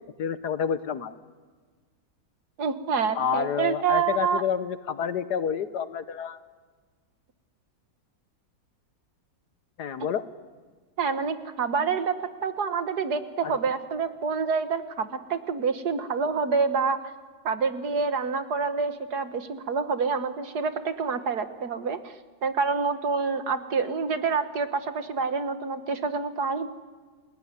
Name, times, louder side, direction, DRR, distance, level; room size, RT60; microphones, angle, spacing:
voice 1, 0.2-1.1 3.2-6.4 9.8-10.2 13.4-13.5, left 8 dB, 65° left, 13 dB, 1.5 m, -29 dB
voice 2, 2.6-4.4 11.0-12.1 12.4-17.0 17.5-22.1 22.4-26.7, right 5 dB, 60° right, 9 dB, 1.8 m, -27 dB
29.5 x 19.5 x 9.7 m, 1.5 s
omnidirectional pair, 2.0 m